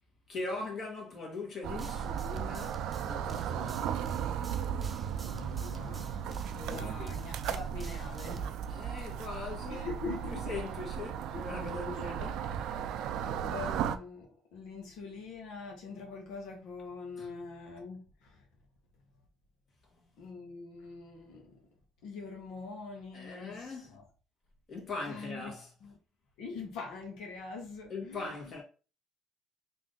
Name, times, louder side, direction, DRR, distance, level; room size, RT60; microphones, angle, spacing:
voice 1, 0.3-4.2 6.7-7.1 8.7-9.9 10.4-12.6 17.2-17.3 23.1-24.0 24.7-25.7 27.9-28.6, left 3 dB, 45° left, 1.5 m, -41 dB
sound 1, 1.6-14.0, right 8 dB, 75° right, 0.3 m, -36 dB
sound 2, 1.8-8.5, right 3 dB, 20° right, 0.6 m, -49 dB
voice 2, 5.2-8.9 9.7-10.6 11.3-12.0 12.3-12.7 13.0-18.5 20.2-21.6 22.0-24.1 25.0-25.5 25.8-25.9 26.4-28.5, left 4 dB, 80° left, 1.0 m, -44 dB
3.4 x 2.7 x 3.7 m
cardioid pair, 105°, 0 cm